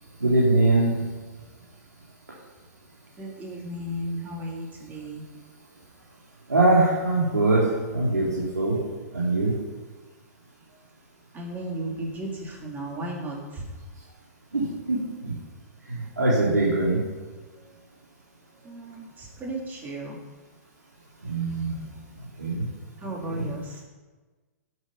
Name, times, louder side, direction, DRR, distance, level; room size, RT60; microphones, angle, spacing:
voice 1, 0.2-1.0 6.5-8.8 9.1-9.5 14.5-15.0 15.2-15.3 15.9-17.0 21.3-21.7 22.4-22.6 23.3-23.5, right 2 dB, 90° right, -6 dB, 3.0 m, -22 dB
voice 2, 3.2-4.6 4.9-5.2 11.4-12.3 12.6-13.3 19.4-20.1 23.0-23.6, right 1 dB, 20° right, -1 dB, 3.5 m, -33 dB
11.5 x 8.0 x 5.8 m, 1.3 s
hypercardioid pair, 115°, 9 cm